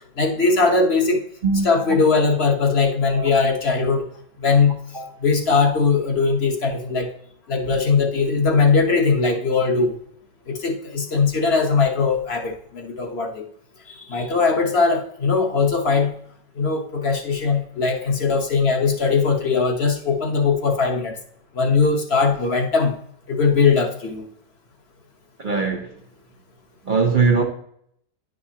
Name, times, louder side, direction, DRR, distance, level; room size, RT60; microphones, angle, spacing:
voice 1, 0.2-1.2 1.6-4.0 4.4-4.8 5.2-7.1 7.5-9.9 10.5-13.4 14.1-16.1 16.6-21.2 21.5-22.9 23.3-24.3, left 4 dB, 45° left, 1.1 m, -20 dB
voice 2, 1.4-2.0 3.1-3.3 4.9-5.1 25.4-25.9 26.8-27.4, right 4 dB, 45° right, 0.6 m, -21 dB
10.5 x 5.2 x 2.8 m
omnidirectional pair, 1.8 m